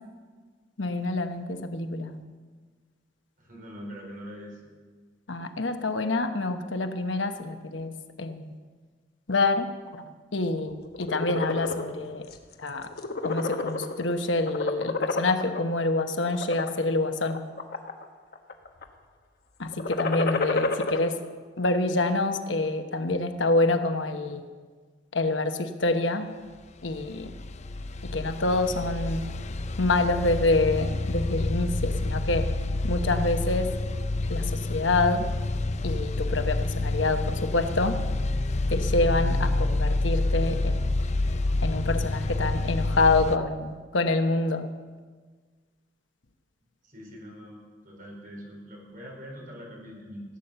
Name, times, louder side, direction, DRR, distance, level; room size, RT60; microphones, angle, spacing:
voice 1, 0.8-2.2 5.3-8.5 9.3-9.7 10.0-12.3 12.6-12.9 13.2-17.4 19.6-21.2 21.6-24.5 25.1-26.3 26.8-27.3 28.0-29.2 29.8-32.4 32.8-33.7 34.3-35.3 35.8-38.0 38.7-40.9 41.6-44.6, left 2 dB, 80° left, 7 dB, 1.1 m, -27 dB
voice 2, 3.4-4.6 46.8-50.2, equal, 50° right, -1 dB, 4.5 m, -43 dB
sound 1, 10.8-11.8 12.3-12.5 12.8-14.1 14.5-15.6 16.2-16.7 17.3-18.0 18.3-18.8 19.7-21.0, left 3 dB, 55° left, 1.1 m, -29 dB
sound 2, 26.8-43.4, left 2 dB, 40° left, 0.5 m, -28 dB
16.5 x 8.9 x 6.8 m, 1.5 s
head